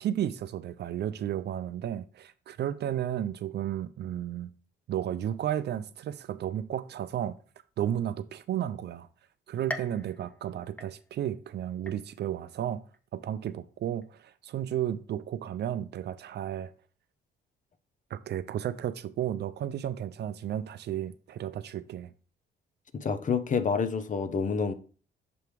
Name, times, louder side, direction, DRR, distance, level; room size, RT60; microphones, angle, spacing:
voice 1, 0.0-4.5 4.9-7.4 7.8-9.1 9.5-12.8 13.1-16.7 18.1-22.1, right 10 dB, 60° right, 0.4 m, -33 dB
sound 1, 9.7-11.4 11.9-12.4 12.9-13.0 14.0-14.1, left 1 dB, 5° left, 0.7 m, -42 dB
voice 2, 22.9-24.7, left 5 dB, 40° left, 0.7 m, -28 dB
7.0 x 3.4 x 4.6 m
cardioid pair, 90°, 20 cm